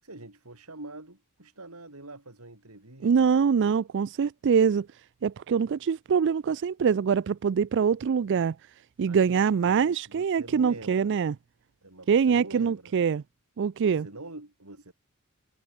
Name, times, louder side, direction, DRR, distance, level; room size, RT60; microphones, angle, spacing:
voice 1, 0.0-3.1 9.0-11.2 11.8-13.0 13.8-14.9, right 2 dB, 85° right, 4.8 m, -45 dB
voice 2, 3.0-4.9 5.2-8.6 9.0-11.3 12.1-13.2 13.6-14.1, right 6 dB, 55° right, 0.4 m, -24 dB
head